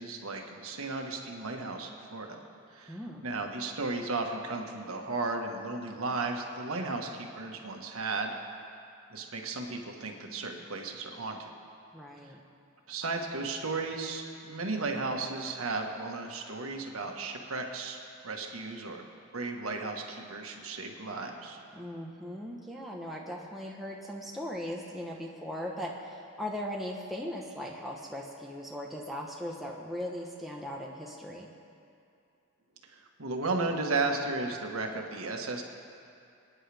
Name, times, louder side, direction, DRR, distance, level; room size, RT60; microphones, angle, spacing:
voice 1, 0.0-2.4 2.7-8.4 9.1-11.5 12.2-12.3 12.9-18.0 18.2-19.0 19.3-21.6 32.8-35.6, right 3 dB, 85° right, 2 dB, 1.5 m, -34 dB
voice 2, 2.9-3.3 11.9-12.4 21.7-31.5, equal, ahead, -3 dB, 1.0 m, -39 dB
27.0 x 9.9 x 3.5 m, 2.5 s
head